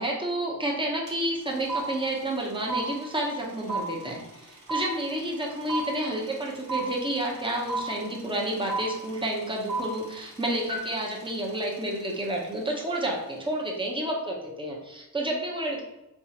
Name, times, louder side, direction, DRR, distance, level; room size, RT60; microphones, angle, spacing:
voice 1, 0.0-15.8, right 1 dB, 15° right, -1 dB, 0.9 m, -30 dB
sound 1, 1.1-1.2 1.4-12.5, right 3 dB, 60° right, 1.1 m, -34 dB
3.5 x 3.0 x 2.9 m, 0.97 s
cardioid pair, 45°, 37 cm